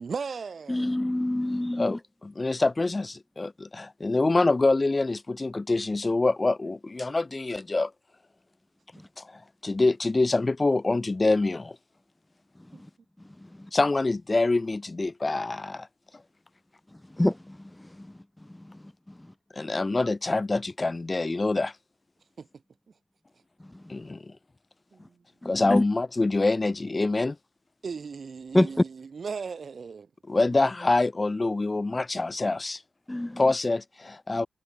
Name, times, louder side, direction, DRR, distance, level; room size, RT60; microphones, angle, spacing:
voice 1, 0.0-1.0 12.7-12.8 22.4-22.5 24.9-25.2 27.8-30.1, right 5 dB, 65° right, 8.0 m, -37 dB
voice 2, 0.7-2.0 8.9-9.0 13.5-13.7 17.1-18.1 18.5-18.8 23.7-23.8 25.4-25.8 28.5-28.7 33.1-33.4 34.3-34.5, left 1 dB, 15° left, 1.8 m, -27 dB
voice 3, 1.8-7.9 9.2-9.3 9.6-11.8 13.7-15.9 19.6-21.7 23.9-24.3 25.4-27.4 30.3-32.8 33.4-34.5, left 3 dB, 35° left, 2.4 m, -25 dB
cardioid pair, 60°, 0 cm